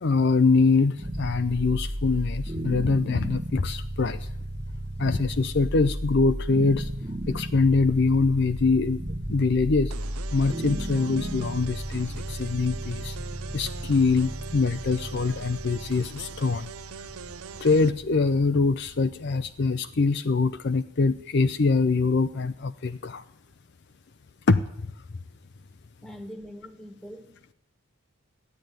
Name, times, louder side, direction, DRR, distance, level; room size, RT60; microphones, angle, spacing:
voice 1, 0.0-4.3 5.0-6.9 7.3-9.0 9.3-9.9 10.3-13.2 13.5-16.7 17.6-23.2 24.5-24.9, left 4 dB, 50° left, 10 dB, 0.5 m, -24 dB
sound 1, 0.9-20.0, right 1 dB, 25° right, 1.1 m, -35 dB
sound 2, 9.9-17.9, right 6 dB, 75° right, 0.6 m, -42 dB
voice 2, 26.0-27.5, equal, ahead, 7 dB, 1.5 m, -43 dB
14.0 x 10.5 x 9.4 m, 0.77 s
head